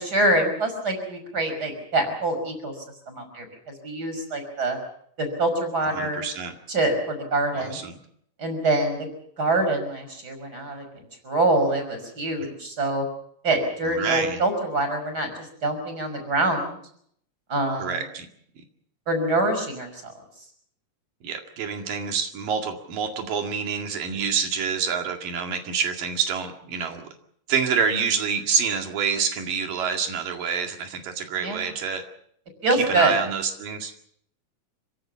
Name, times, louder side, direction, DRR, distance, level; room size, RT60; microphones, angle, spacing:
voice 1, 0.0-2.7 3.1-3.5 3.8-4.8 5.2-6.2 6.7-7.8 8.4-9.1 9.4-10.8 11.2-13.1 13.4-16.8 17.5-18.0 19.1-20.1 31.4-31.6 32.6-33.2, right 2 dB, 30° right, 6 dB, 5.9 m, -25 dB
voice 2, 6.0-6.6 7.5-7.9 13.9-14.4 17.8-18.3 18.6-18.7 21.2-27.1 27.5-32.0 32.7-34.1, right 6 dB, 90° right, 4 dB, 3.9 m, -27 dB
27.0 x 17.0 x 7.1 m, 0.67 s
omnidirectional pair, 3.8 m